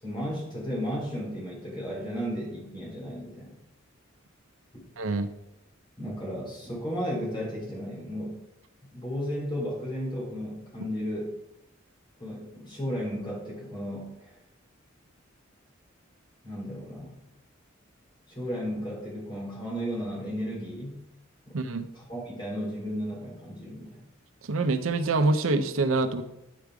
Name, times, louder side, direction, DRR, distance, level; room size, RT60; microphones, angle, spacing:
voice 1, 0.0-3.5 4.7-4.9 6.0-8.4 8.9-11.3 12.2-14.3 16.4-17.2 18.3-21.0 21.5-21.6 21.9-24.0, equal, 25° left, -4 dB, 3.4 m, -34 dB
voice 2, 5.0-5.3 21.5-21.9 24.5-26.2, right 3 dB, 80° right, 10 dB, 0.6 m, -25 dB
9.3 x 5.2 x 4.7 m, 0.88 s
head